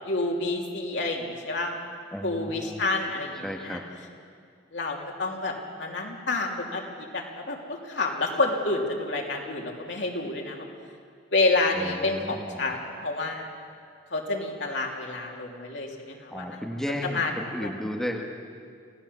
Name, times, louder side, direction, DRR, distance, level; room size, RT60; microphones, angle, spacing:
voice 1, 0.1-1.7 2.2-3.8 4.7-5.5 5.8-6.8 7.1-10.7 11.3-13.5 14.1-16.6 17.0-17.3 17.6-17.7, left 2 dB, 80° left, 0 dB, 3.1 m, -29 dB
voice 2, 2.1-2.9 3.4-3.8 11.7-12.7 16.3-18.2, equal, 5° left, 0 dB, 1.6 m, -34 dB
27.0 x 17.0 x 7.0 m, 2.3 s
head